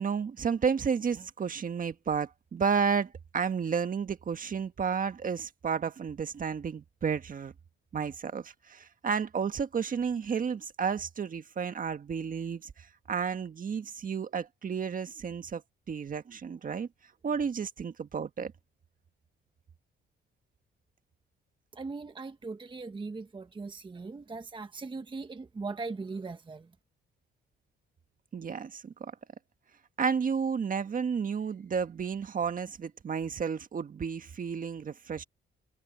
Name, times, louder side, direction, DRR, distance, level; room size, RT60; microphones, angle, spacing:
voice 1, 0.0-7.5 7.9-15.6 15.9-16.9 17.2-18.5 28.3-29.1 30.0-35.2, right 6 dB, 45° right, 1.6 m, -32 dB
voice 2, 21.7-26.7, right 4 dB, 25° right, 1.1 m, -39 dB
cardioid pair, 90°, 20 cm